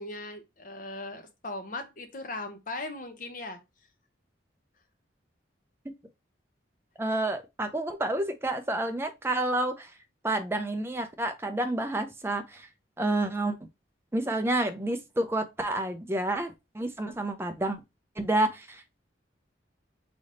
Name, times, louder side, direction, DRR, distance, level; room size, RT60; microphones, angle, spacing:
voice 1, 0.0-3.6, left 2 dB, 45° left, 0.8 m, -38 dB
voice 2, 7.0-9.9 10.2-12.7 13.0-13.6 14.1-17.8 18.2-19.0, right 1 dB, 15° right, 0.5 m, -29 dB
4.0 x 3.4 x 3.8 m
head